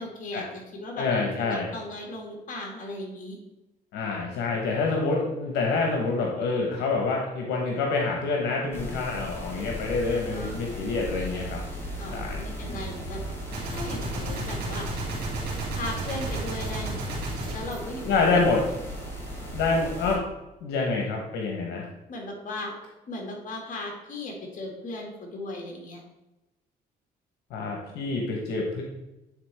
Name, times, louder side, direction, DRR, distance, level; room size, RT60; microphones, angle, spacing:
voice 1, 0.0-1.0 1.4-3.4 10.1-10.6 12.0-14.9 15.7-17.1 17.5-18.4 22.1-22.7 23.1-26.0, left 2 dB, 50° left, 0 dB, 2.0 m, -37 dB
voice 2, 1.0-1.7 3.9-11.6 12.1-12.4 18.1-18.6 19.5-20.2 20.6-21.9 27.5-28.8, left 3 dB, 90° left, 0 dB, 1.1 m, -27 dB
sound 1, 8.7-20.2, equal, 15° left, 2.0 m, -36 dB
Gunshot gunfire, 13.5-18.7, right 2 dB, 70° right, 2.2 m, -34 dB
9.3 x 4.0 x 3.4 m, 0.97 s
cardioid pair, 100°, 17 cm